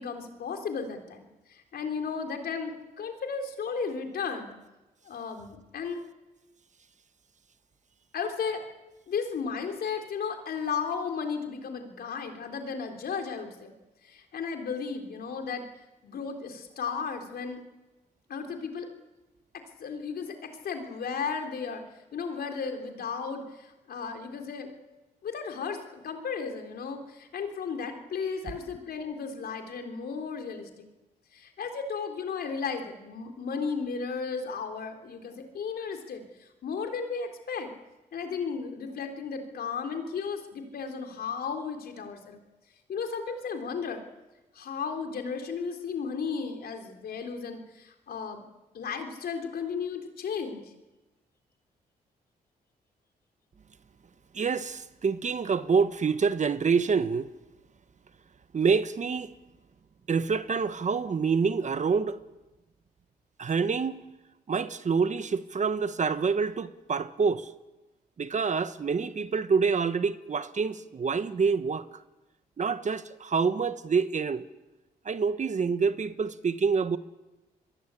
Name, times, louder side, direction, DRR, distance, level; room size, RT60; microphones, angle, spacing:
voice 1, 0.0-4.6 5.1-6.0 8.1-8.6 9.1-13.7 14.0-15.7 16.0-17.6 18.3-18.9 19.8-21.8 22.1-24.7 25.2-30.9 31.3-37.7 38.1-42.4 42.9-44.0 44.5-48.4 48.7-50.6, left 5 dB, 70° left, 3.9 m, -34 dB
voice 2, 54.3-57.3 58.5-59.3 60.1-62.2 63.4-64.0 64.5-67.5 68.2-71.9 72.6-74.4 75.0-77.0, right 5 dB, 50° right, 1.4 m, -27 dB
26.5 x 22.0 x 8.5 m
cardioid pair, 70°, 16 cm